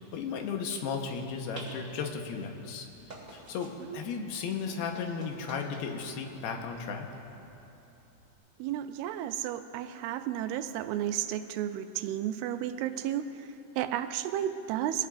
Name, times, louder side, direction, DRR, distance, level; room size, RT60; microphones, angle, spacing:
voice 1, 0.1-2.9 3.3-7.1, left 5 dB, 90° left, 3 dB, 3.0 m, -35 dB
sound 1, 0.8-8.3, right 2 dB, 25° right, 3.1 m, -51 dB
voice 2, 3.8-4.3 8.6-15.1, right 11 dB, 85° right, 9 dB, 2.4 m, -33 dB
23.0 x 17.0 x 2.6 m, 2.9 s
omnidirectional pair, 4.5 m